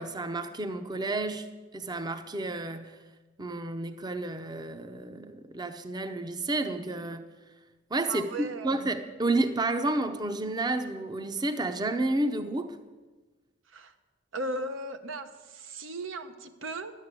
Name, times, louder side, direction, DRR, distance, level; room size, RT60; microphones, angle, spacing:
voice 1, 0.0-1.5 1.7-3.0 3.4-7.3 7.9-12.8, right 2 dB, 20° right, 9 dB, 0.6 m, -31 dB
voice 2, 8.1-8.9 13.7-13.9 14.3-16.9, right 2 dB, 90° right, 7 dB, 1.0 m, -37 dB
11.5 x 8.2 x 8.2 m, 1.3 s
head